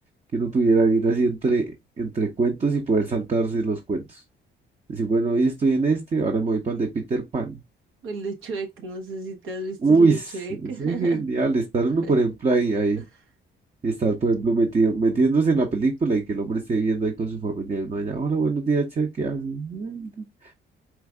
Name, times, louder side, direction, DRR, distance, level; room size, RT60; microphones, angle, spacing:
voice 1, 0.3-4.2 4.9-7.6 9.8-10.2 10.6-13.0 13.8-20.5, right 3 dB, 35° right, 0.8 m, -23 dB
voice 2, 8.0-11.2 12.0-12.1 13.0-13.1, right 3 dB, 90° right, 1.3 m, -33 dB
4.6 x 2.5 x 3.5 m
cardioid pair, 90°, 20 cm